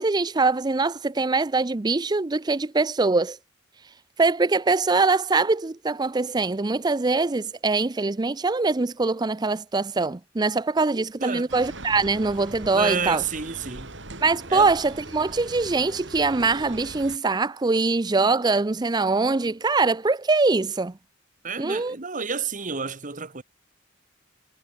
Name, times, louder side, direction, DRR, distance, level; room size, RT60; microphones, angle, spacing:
voice 1, 0.0-3.4 4.2-13.2 14.2-20.9 21.6-22.0, right 3 dB, 20° right, 0.5 m, -23 dB
voice 2, 10.9-11.5 12.7-13.9 14.5-14.7 21.4-23.4, right 5 dB, 40° right, 1.5 m, -30 dB
sound 1, 11.5-17.2, right 2 dB, 65° right, 4.6 m, -40 dB
head